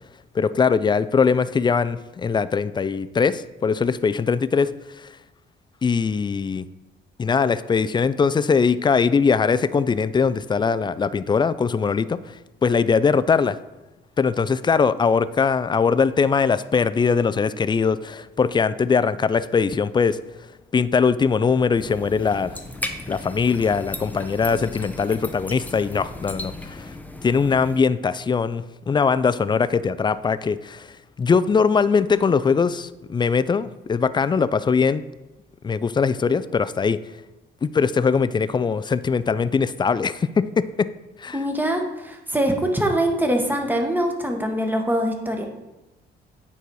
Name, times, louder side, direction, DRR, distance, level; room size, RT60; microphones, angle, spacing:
voice 1, 0.3-4.7 5.0-5.1 5.8-6.7 7.2-12.3 12.6-13.6 14.2-20.2 20.7-22.6 23.1-26.9 27.2-30.9 31.2-35.0 35.6-37.0 37.6-40.9 41.2-41.4, left 5 dB, 25° left, 15 dB, 0.3 m, -21 dB
sound 1, 21.8-27.8, left 1 dB, 10° left, 0.7 m, -36 dB
voice 2, 41.3-45.5, right 1 dB, 10° right, 3 dB, 1.3 m, -23 dB
9.2 x 4.2 x 4.7 m, 1.0 s
cardioid pair, 90°, 20 cm